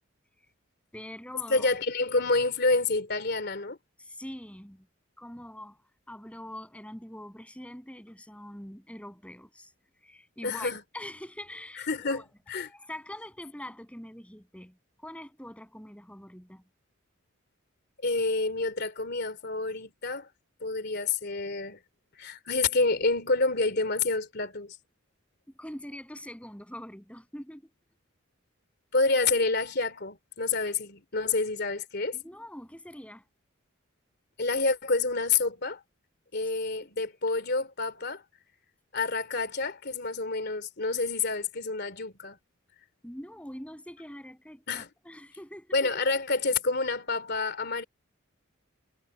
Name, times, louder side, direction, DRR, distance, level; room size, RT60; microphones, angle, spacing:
voice 1, 0.9-1.7 4.0-4.9 5.2-5.8 6.1-9.7 10.0-12.3 12.6-16.6 25.6-27.6 32.1-33.2 43.0-45.7, left 1 dB, 5° left, 7.5 m, -44 dB
voice 2, 1.5-3.8 10.4-10.8 11.9-12.7 18.0-20.3 20.6-21.8 22.2-24.8 28.9-32.2 34.4-35.8 36.3-38.2 38.9-42.4 44.7-44.9 45.7-47.8, left 3 dB, 55° left, 3.0 m, -28 dB
head